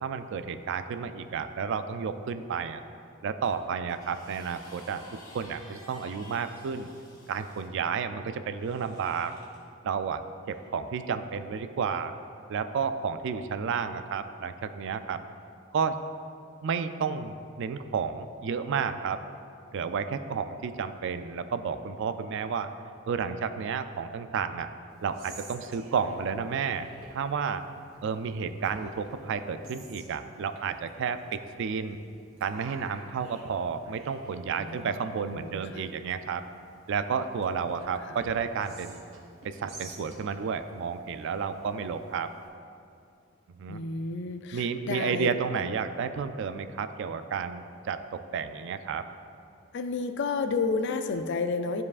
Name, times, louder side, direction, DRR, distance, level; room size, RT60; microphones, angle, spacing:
voice 1, 0.0-2.8 3.2-5.0 5.3-6.9 7.3-9.3 9.8-10.2 10.5-12.1 12.5-15.2 15.7-16.0 16.6-19.2 19.7-22.7 23.1-24.7 25.0-27.6 28.0-32.0 32.4-36.4 36.9-39.0 39.4-42.3 43.6-43.8 44.5-49.0, right 6 dB, 65° right, 10 dB, 0.3 m, -31 dB
sound 1, 3.4-7.7 8.6-9.6 10.5-10.7, left 1 dB, 20° left, 1.2 m, -52 dB
Whispering, 24.9-42.5, right 2 dB, 80° right, 1.3 m, -52 dB
voice 2, 34.5-35.9 37.5-38.2 43.7-45.3 49.7-51.8, left 4 dB, 60° left, 8 dB, 0.4 m, -32 dB
12.0 x 4.7 x 2.4 m, 2.5 s
head